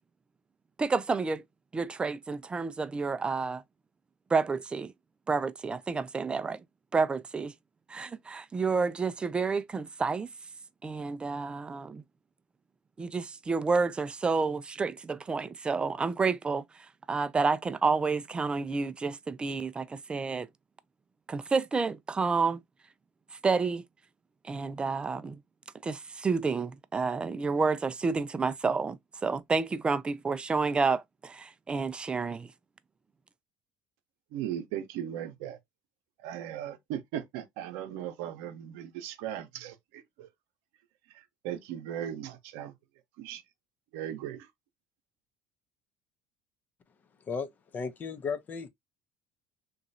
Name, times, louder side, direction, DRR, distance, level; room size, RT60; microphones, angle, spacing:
voice 1, 0.8-1.4 1.7-3.6 4.3-4.9 5.3-6.6 6.9-7.5 7.9-10.3 10.8-12.0 13.0-16.6 17.1-20.5 21.3-22.6 23.4-23.8 24.4-25.4 25.8-29.0 29.2-32.5, right 4 dB, 20° right, 0.4 m, -29 dB
voice 2, 34.3-35.6 36.2-40.3 41.4-42.7 43.2-43.4 43.9-44.5, right 10 dB, 80° right, 0.7 m, -37 dB
voice 3, 47.3-48.7, left 5 dB, 40° left, 0.7 m, -35 dB
3.0 x 2.4 x 2.6 m
supercardioid pair, 90°, 5 cm